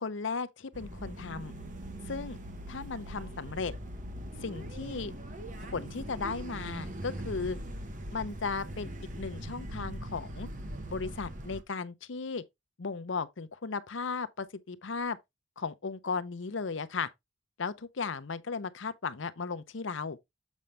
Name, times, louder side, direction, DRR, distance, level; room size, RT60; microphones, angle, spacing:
voice 1, 0.0-1.5 2.1-2.4 2.7-3.7 4.4-5.1 5.6-7.6 8.1-8.9 9.2-10.5 10.9-12.4 12.8-15.2 15.6-17.1 17.6-20.2, left 4 dB, 70° left, 0.7 m, -36 dB
sound 1, 0.7-11.6, right 1 dB, 40° right, 1.1 m, -41 dB
7.3 x 5.2 x 3.2 m
head